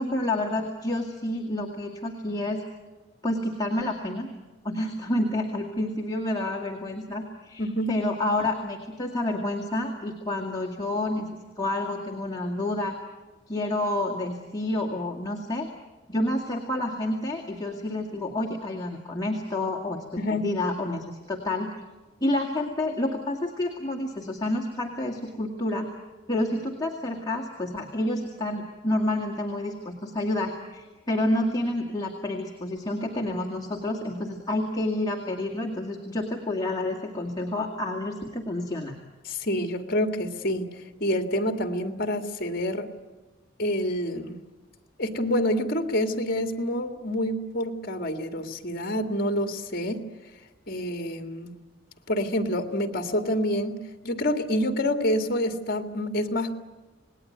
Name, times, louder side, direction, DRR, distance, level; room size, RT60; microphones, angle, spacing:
voice 1, 0.0-2.6 3.2-4.3 4.6-11.3 11.6-13.0 13.5-15.7 16.1-21.7 22.2-25.9 26.3-38.9, left 1 dB, 20° left, -1 dB, 2.2 m, -29 dB
voice 2, 7.6-7.9 20.2-20.4 39.2-40.7 41.0-42.9 43.6-44.4 45.0-50.1 50.7-51.5 52.1-56.5, equal, 50° left, 7 dB, 2.1 m, -27 dB
27.5 x 19.5 x 9.5 m, 1.2 s
head